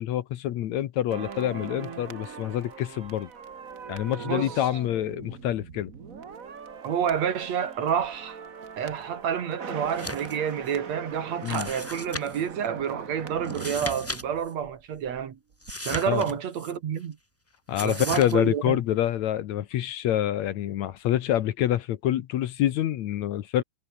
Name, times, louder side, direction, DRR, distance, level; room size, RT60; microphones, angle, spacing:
voice 1, 0.0-3.3 3.9-5.9 11.4-11.7 16.1-16.2 17.7-23.6, left 12 dB, 70° left, 2.2 m, -27 dB
sound 1, 1.1-15.3 15.5-15.7, right 6 dB, 40° right, 1.4 m, -41 dB
voice 2, 4.2-4.6 6.8-8.4 8.8-15.4 15.8-17.2 17.8-18.8, right 8 dB, 60° right, 2.9 m, -29 dB
sound 2, 9.9-10.4 10.7-10.8 11.4-12.5 13.4-14.2 14.5-14.6 15.6-16.7 17.7-18.3, left 1 dB, 10° left, 0.9 m, -36 dB
omnidirectional pair, 3.6 m